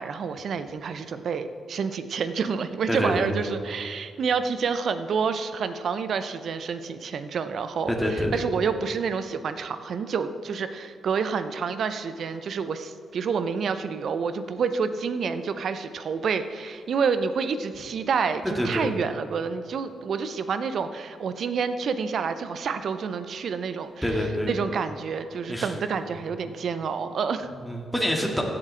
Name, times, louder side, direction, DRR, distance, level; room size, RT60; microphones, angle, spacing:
voice 1, 0.0-27.5, right 5 dB, 60° right, 11 dB, 0.6 m, -28 dB
voice 2, 2.9-3.4 8.0-8.3 18.6-18.9 24.0-24.5 25.5-25.7 27.6-28.4, equal, ahead, -1 dB, 2.1 m, -26 dB
16.0 x 7.8 x 3.4 m, 2.5 s
hypercardioid pair, 40°, 0 cm